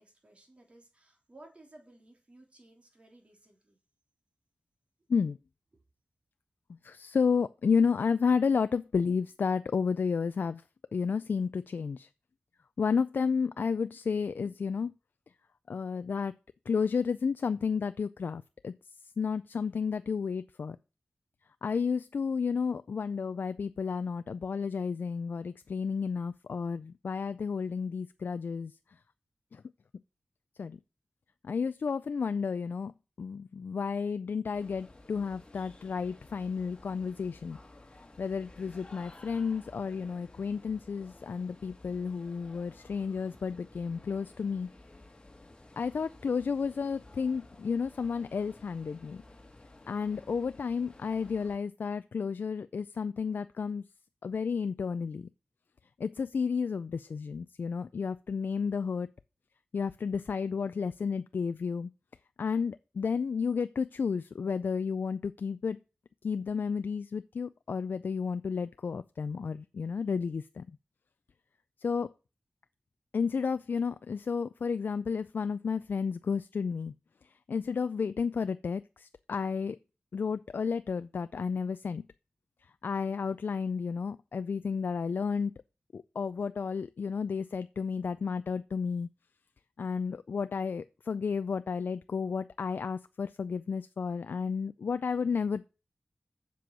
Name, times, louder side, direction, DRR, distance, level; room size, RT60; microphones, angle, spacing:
voice 1, 0.0-3.8, right 1 dB, 35° right, 3.4 m, -57 dB
voice 2, 6.8-10.6 10.9-12.1 12.8-14.9 15.7-16.3 16.7-18.7 19.2-20.8 21.6-28.7 29.5-29.6 30.6-30.8 31.4-32.9 33.2-37.6 38.2-44.7 45.8-49.2 49.9-53.8 54.2-55.3 56.0-59.1 59.7-61.9 62.4-65.8 66.2-70.6 71.8-72.1 73.1-76.9 77.5-79.8 80.1-82.0 82.8-85.5 85.9-89.1 89.8-95.7, left 5 dB, 75° left, 0.4 m, -32 dB
sound 1, 34.5-51.6, left 2 dB, 25° left, 2.0 m, -54 dB
7.6 x 6.9 x 7.5 m
wide cardioid pair, 95°, 3 cm